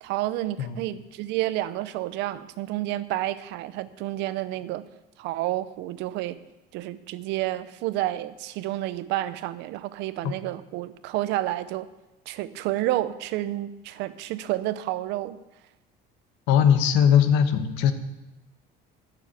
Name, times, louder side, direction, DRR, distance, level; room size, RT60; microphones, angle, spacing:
voice 1, 0.0-4.8 5.2-6.4 6.7-11.9 12.3-15.4, right 15 dB, 65° right, 14 dB, 0.7 m, -30 dB
voice 2, 16.5-17.9, left 8 dB, 70° left, 10 dB, 1.1 m, -19 dB
11.5 x 7.2 x 8.2 m, 0.99 s
cardioid pair, 175°, 19 cm